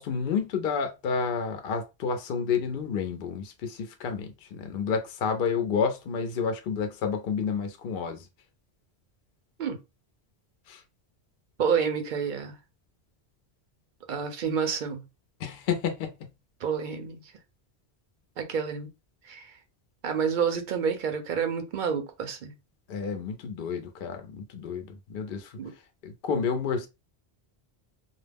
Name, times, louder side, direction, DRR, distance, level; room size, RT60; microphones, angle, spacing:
voice 1, 0.0-8.3 10.7-10.8 15.4-16.3 22.9-25.6 26.0-26.9, left 6 dB, 60° left, 0.7 m, -30 dB
voice 2, 11.6-12.5 14.1-15.0 16.6-17.2 18.4-18.9 19.3-19.4 20.0-22.5 25.6-25.7, right 6 dB, 55° right, 0.6 m, -29 dB
2.3 x 2.0 x 3.3 m
omnidirectional pair, 1.1 m